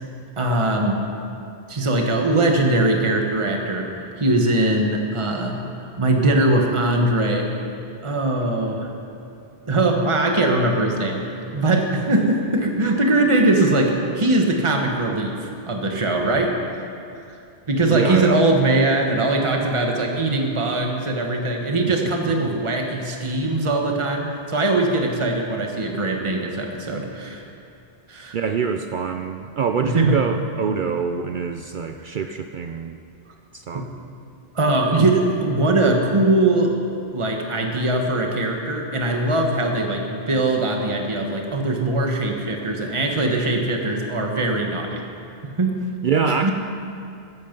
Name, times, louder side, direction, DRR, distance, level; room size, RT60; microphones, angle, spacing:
voice 1, 0.4-1.0 1.7-3.9 4.2-5.6 6.0-7.5 8.0-8.9 9.7-16.5 17.3-17.4 17.7-27.4 28.1-28.4 29.8-30.2 33.7-33.8 34.5-36.7 37.1-45.0 45.6-45.8 46.2-46.5, right 2 dB, 30° right, 1 dB, 1.4 m, -21 dB
voice 2, 17.9-18.4 21.9-22.0 28.3-33.0 33.5-33.9 46.0-46.5, right 6 dB, 55° right, 6 dB, 0.7 m, -25 dB
15.0 x 14.0 x 5.3 m, 2.6 s
omnidirectional pair, 1.1 m